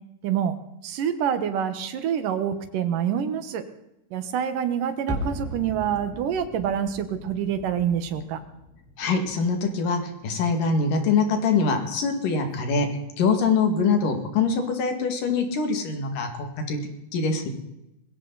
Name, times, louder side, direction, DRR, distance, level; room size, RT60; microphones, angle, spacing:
voice 1, 0.2-0.6 0.8-3.6 4.1-8.4, right 8 dB, 90° right, 10 dB, 3.0 m, -26 dB
sound 1, 5.1-10.0 10.3-10.4, equal, 5° right, 2.7 m, -37 dB
voice 2, 9.0-12.9 13.2-16.8 17.1-17.5, left 4 dB, 90° left, 5 dB, 3.8 m, -24 dB
21.0 x 16.0 x 4.0 m, 0.88 s
omnidirectional pair, 3.7 m